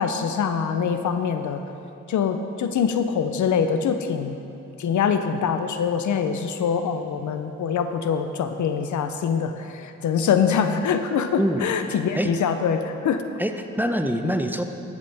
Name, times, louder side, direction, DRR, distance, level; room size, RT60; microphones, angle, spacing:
voice 1, 0.0-1.6 2.1-4.4 4.8-13.2, left 7 dB, 70° left, 8 dB, 0.7 m, -24 dB
voice 2, 11.4-11.7 12.1-12.3 13.4-14.6, equal, 5° right, 6 dB, 0.6 m, -24 dB
13.0 x 8.2 x 3.5 m, 2.8 s
cardioid pair, 65°, 31 cm